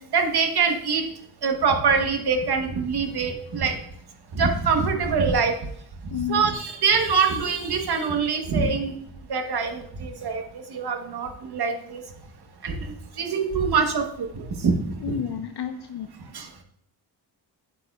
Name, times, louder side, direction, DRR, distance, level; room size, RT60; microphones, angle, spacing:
voice 1, 0.1-1.0 1.4-3.7 4.3-5.5 6.3-9.0 9.3-12.0 12.6-12.8 13.2-14.7 15.1-15.2 16.3-16.5, right 5 dB, 55° right, 4 dB, 1.1 m, -24 dB
voice 2, 6.1-6.5 15.0-16.1 16.4-16.6, left 8 dB, 60° left, 7 dB, 0.5 m, -31 dB
7.9 x 6.9 x 2.3 m, 0.68 s
cardioid pair, 100°, 45 cm